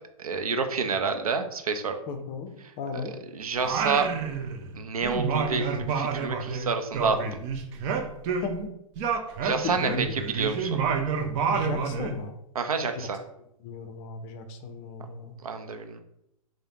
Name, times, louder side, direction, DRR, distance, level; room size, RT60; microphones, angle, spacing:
voice 1, 0.2-2.0 3.3-4.1 4.8-7.2 9.4-10.1 10.3-10.8 12.6-13.2 15.4-16.0, right 5 dB, 85° right, 7 dB, 0.5 m, -28 dB
voice 2, 2.1-3.2 8.4-8.5 9.5-10.2 11.5-12.4 12.9-13.0 13.6-15.4, left 5 dB, 35° left, 7 dB, 0.5 m, -36 dB
Singing, 3.6-4.8 5.0-8.7 9.0-12.2, right 6 dB, 35° right, 0.5 m, -29 dB
4.8 x 2.1 x 2.8 m, 0.80 s
hypercardioid pair, 115°, 18 cm